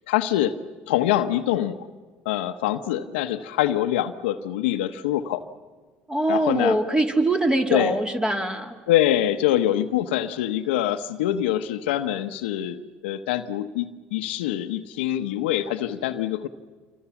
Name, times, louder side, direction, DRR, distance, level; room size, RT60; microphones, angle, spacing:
voice 1, 0.1-0.6 0.9-1.9 2.2-5.4 6.3-6.8 7.7-8.0 8.9-16.5, left 12 dB, 85° left, 9 dB, 1.0 m, -24 dB
voice 2, 6.1-8.8, right 1 dB, 15° right, 4 dB, 3.0 m, -23 dB
27.0 x 24.5 x 7.2 m, 1.4 s
supercardioid pair, 80°, 6 cm